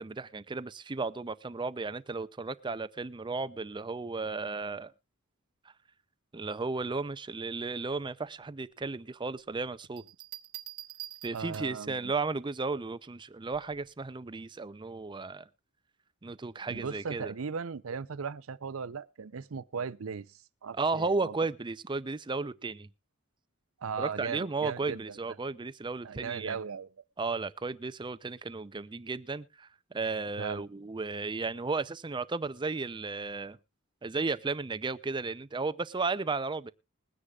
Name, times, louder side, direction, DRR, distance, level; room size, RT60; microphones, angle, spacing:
voice 1, 0.0-4.9 6.3-10.0 11.2-15.5 16.2-17.3 20.7-22.9 24.0-26.6 27.2-33.6 34.0-36.7, right 3 dB, 20° right, 0.5 m, -34 dB
Bell, 10.0-11.9 13.5-13.9, right 14 dB, 85° right, 1.1 m, -45 dB
voice 2, 11.3-12.0 16.7-21.3 23.8-25.2 26.0-26.9 30.4-30.7, right 5 dB, 70° right, 0.6 m, -37 dB
21.5 x 9.9 x 2.4 m
head